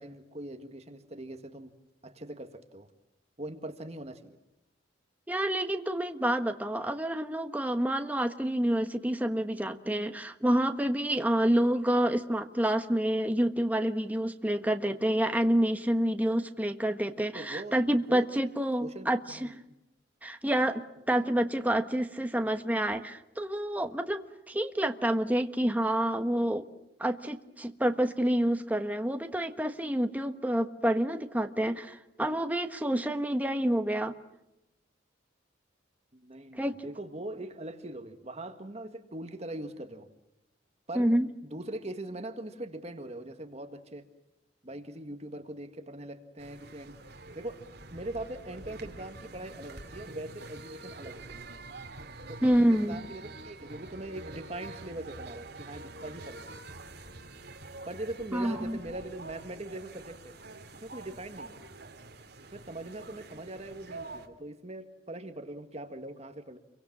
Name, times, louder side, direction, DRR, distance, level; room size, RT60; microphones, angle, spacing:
voice 1, 0.0-1.7 2.0-2.9 3.4-4.4 17.3-17.8 18.1-18.3 18.8-19.6 36.1-40.1 40.9-41.1 41.5-44.0 44.6-46.9 47.3-47.6 47.9-51.5 52.3-56.6 57.9-60.3 60.8-61.6 62.5-66.6, right 1 dB, 35° right, 7 dB, 1.8 m, -41 dB
voice 2, 5.3-19.5 20.2-26.7 27.0-34.1 36.6-36.8 40.9-41.3 52.4-53.0 58.3-58.8, right 1 dB, 10° right, 6 dB, 1.3 m, -28 dB
sound 1, 46.4-64.3, right 2 dB, 55° right, 2.9 m, -46 dB
29.0 x 24.0 x 7.4 m, 0.92 s
head